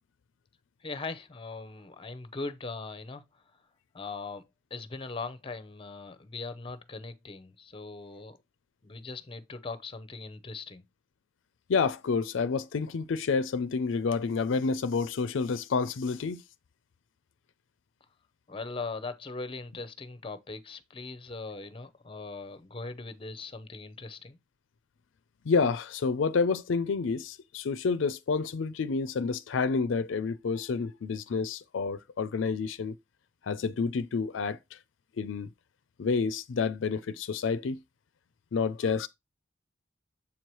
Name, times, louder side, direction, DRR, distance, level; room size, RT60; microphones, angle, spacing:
voice 1, 0.8-3.2 3.9-4.4 4.7-8.4 8.8-10.8 18.5-24.4, left 3 dB, 30° left, 0.6 m, -40 dB
voice 2, 11.7-16.4 25.5-32.9 33.4-34.6 35.2-35.5 36.0-37.8 38.5-39.1, left 5 dB, 75° left, 0.4 m, -29 dB
7.2 x 4.6 x 3.0 m
head